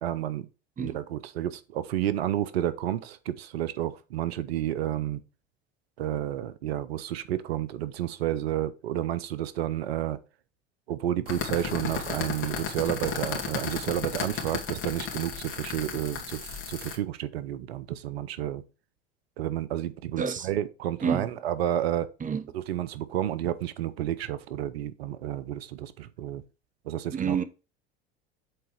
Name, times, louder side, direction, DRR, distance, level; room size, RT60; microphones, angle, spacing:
voice 1, 0.0-0.5 0.8-5.2 6.0-10.2 10.9-18.6 19.4-22.1 22.7-26.4 26.8-27.4, right 12 dB, 85° right, 0.7 m, -31 dB
sound 1, 11.3-17.0, left 6 dB, 45° left, 2.4 m, -34 dB
voice 2, 20.2-20.5 21.0-21.3 22.2-22.5 27.1-27.4, right 6 dB, 25° right, 1.0 m, -29 dB
7.8 x 4.0 x 4.6 m
hypercardioid pair, 75°, 30 cm